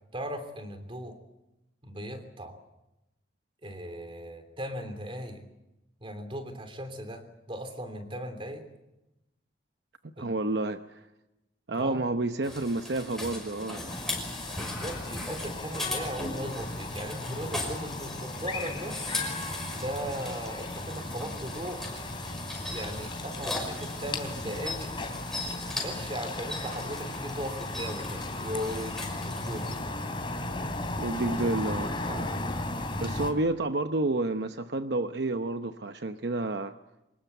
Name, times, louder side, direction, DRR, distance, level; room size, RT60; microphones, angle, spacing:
voice 1, 0.1-1.2 1.8-2.6 3.6-5.4 6.0-8.7 10.2-10.3 11.7-12.0 14.6-19.0 19.7-21.8 22.6-24.9 25.8-29.7 31.3-31.7 32.1-32.4, equal, 30° right, 8 dB, 3.1 m, -38 dB
voice 2, 10.2-11.0 11.7-13.9 31.0-31.9 33.0-36.7, right 2 dB, 65° right, 8 dB, 0.9 m, -30 dB
sound 1, 12.4-29.8, left 2 dB, ahead, 5.7 m, -39 dB
sound 2, 13.9-33.3, left 2 dB, 30° left, 3.1 m, -36 dB
25.0 x 20.5 x 8.1 m, 0.95 s
head